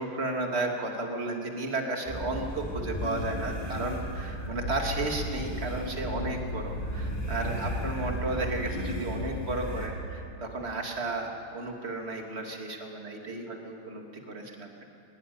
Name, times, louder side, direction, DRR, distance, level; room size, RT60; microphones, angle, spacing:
voice 1, 0.0-14.8, right 2 dB, 30° right, 1 dB, 2.9 m, -33 dB
sound 1, 2.1-9.9, equal, 25° left, 3.8 m, -34 dB
23.5 x 21.5 x 9.6 m, 2.6 s
omnidirectional pair, 2.3 m